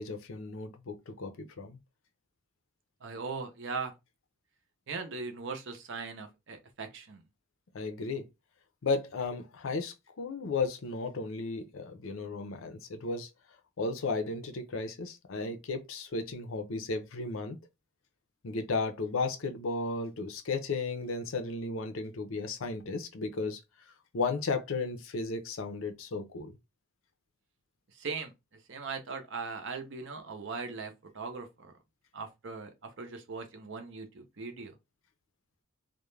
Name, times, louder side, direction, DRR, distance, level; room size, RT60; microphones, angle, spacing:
voice 1, 0.0-1.8 7.7-8.2 8.8-13.3 13.8-17.6 18.4-23.6 24.1-26.5, left 3 dB, 60° left, 0.5 m, -34 dB
voice 2, 3.0-3.9 4.9-7.2 27.9-28.3 28.7-31.7 32.1-34.7, right 4 dB, 55° right, 0.6 m, -39 dB
2.4 x 2.1 x 3.1 m
head